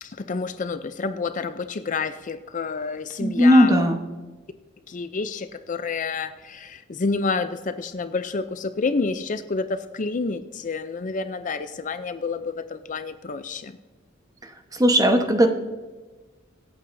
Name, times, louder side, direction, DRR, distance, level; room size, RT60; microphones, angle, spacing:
voice 1, 0.0-3.8 4.9-13.8, left 4 dB, 40° left, 11 dB, 0.5 m, -29 dB
voice 2, 3.2-4.0 14.4-15.5, equal, 20° right, 5 dB, 1.1 m, -18 dB
24.5 x 8.5 x 2.7 m, 1.3 s
head